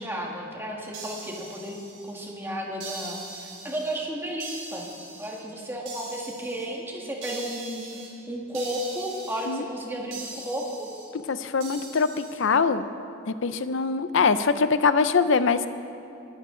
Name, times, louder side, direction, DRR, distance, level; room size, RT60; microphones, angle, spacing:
voice 1, 0.0-1.8 2.0-4.9 5.2-7.8 8.3-10.9, equal, 10° right, -1 dB, 1.6 m, -33 dB
sound 1, 0.9-2.3 2.8-4.0 4.4-5.4 5.8-6.7 7.2-8.1 8.5-9.5 10.1-11.0 11.6-12.4, right 3 dB, 80° right, 3.8 m, -41 dB
voice 2, 11.3-12.9 13.3-15.7, left 5 dB, 65° left, 12 dB, 0.6 m, -23 dB
20.5 x 12.0 x 3.8 m, 2.7 s
head